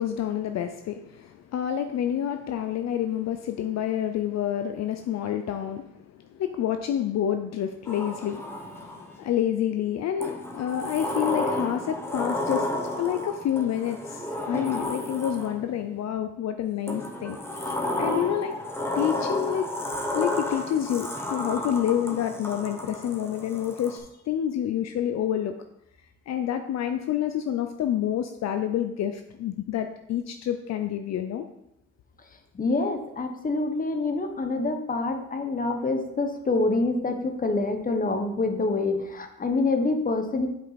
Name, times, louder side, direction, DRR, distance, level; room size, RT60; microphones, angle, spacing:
voice 1, 0.0-12.7 13.0-18.5 19.0-19.7 20.1-25.5 26.3-31.5, left 10 dB, 60° left, 7 dB, 0.6 m, -28 dB
Sliding door, 7.9-9.2 10.2-15.8 16.9-24.0, left 1 dB, 10° left, 1.4 m, -32 dB
voice 2, 32.5-40.5, left 3 dB, 30° left, 6 dB, 1.2 m, -26 dB
7.8 x 5.5 x 4.2 m, 0.81 s
cardioid pair, 90°, 30 cm